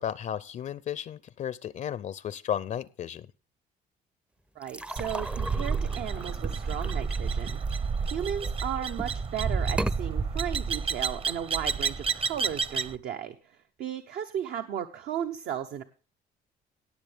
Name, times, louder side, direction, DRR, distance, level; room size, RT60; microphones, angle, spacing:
voice 1, 0.0-3.3, left 9 dB, 45° left, 19 dB, 0.5 m, -34 dB
sound 1, 4.6-8.4 8.9-9.3 9.7-10.0, right 1 dB, 5° right, 0.5 m, -37 dB
voice 2, 4.6-15.8, right 9 dB, 70° right, 7 dB, 1.0 m, -35 dB
sound 2, 5.0-13.0, right 5 dB, 35° right, 0.8 m, -30 dB
18.0 x 7.0 x 3.4 m, 0.37 s
cardioid pair, 110°, 17 cm